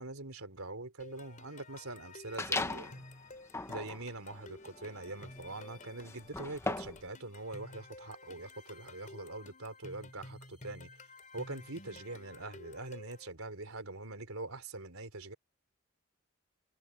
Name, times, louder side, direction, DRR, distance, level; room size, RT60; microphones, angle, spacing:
voice 1, 0.0-3.1 3.7-10.9 11.3-15.4, right 2 dB, 90° right, 3.7 m, -43 dB
sound 1, 1.0-13.3, left 2 dB, 35° left, 4.9 m, -53 dB
sound 2, 2.4-3.0 3.5-7.1, left 2 dB, 15° left, 0.8 m, -38 dB
head